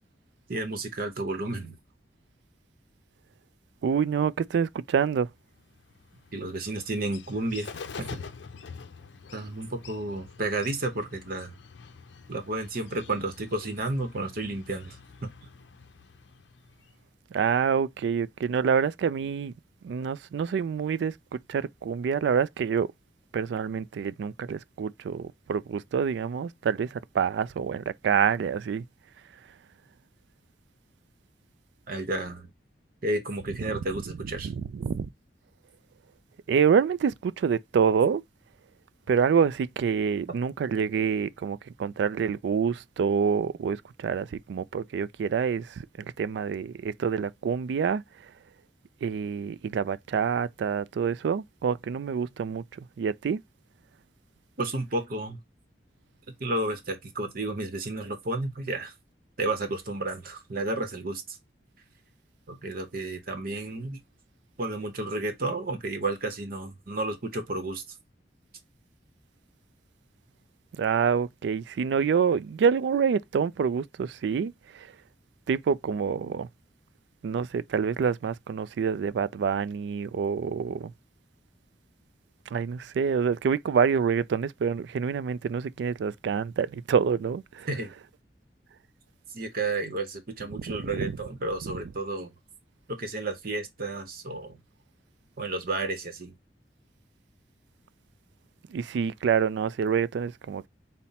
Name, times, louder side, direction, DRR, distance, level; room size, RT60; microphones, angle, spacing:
voice 1, 0.5-1.8 6.3-7.7 8.0-8.2 9.3-11.5 12.3-15.0 15.2-15.3 31.9-32.5 33.0-34.5 54.6-55.4 56.4-58.9 59.4-61.4 62.5-64.0 64.6-67.8 87.7-87.9 89.3-92.3 93.0-94.6 95.4-96.3, right 2 dB, 55° right, 0.9 m, -32 dB
voice 2, 3.8-5.3 17.3-19.5 19.8-21.2 21.5-22.9 23.3-28.8 33.7-33.8 34.4-35.1 36.5-38.2 39.1-48.0 49.0-53.4 70.8-74.9 75.5-76.5 77.2-80.9 82.5-87.7 90.5-91.1 98.7-100.7, right 6 dB, 75° right, 0.3 m, -27 dB
Bird, 5.6-17.1, left 5 dB, 80° left, 0.5 m, -46 dB
5.5 x 2.1 x 4.1 m
head